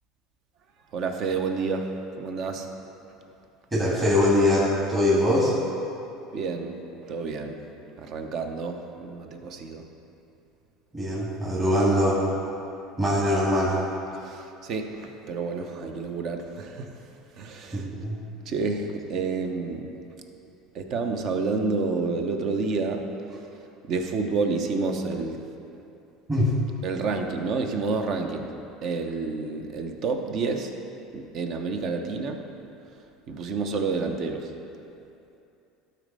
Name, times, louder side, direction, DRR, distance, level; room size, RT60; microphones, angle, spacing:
voice 1, 0.9-2.7 6.3-6.8 7.0-7.6 8.0-9.8 14.2-16.9 17.4-17.9 18.5-19.9 20.7-23.0 23.9-25.4 26.8-28.5 28.8-30.7 31.1-32.4 33.3-34.5, right 4 dB, 55° right, 4 dB, 0.9 m, -29 dB
voice 2, 3.7-5.5 10.9-12.2 13.0-13.8 17.7-18.2 26.3-26.5, left 1 dB, 25° right, -7 dB, 1.9 m, -22 dB
12.5 x 4.3 x 5.4 m, 2.7 s
supercardioid pair, 100°, 0 cm